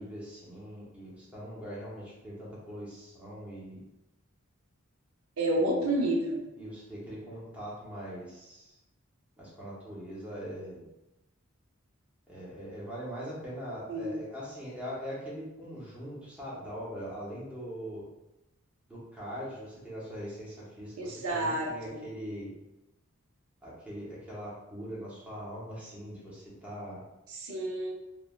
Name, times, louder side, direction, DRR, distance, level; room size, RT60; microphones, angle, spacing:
voice 1, 0.0-3.8 5.5-6.0 6.6-8.7 9.4-10.8 12.3-18.0 18.9-22.5 23.6-27.0, equal, 5° right, -7 dB, 0.8 m, -41 dB
voice 2, 5.4-6.4 13.9-14.2 21.0-22.0 27.3-27.9, right 1 dB, 90° right, -1 dB, 0.6 m, -30 dB
3.2 x 2.1 x 2.3 m, 0.95 s
head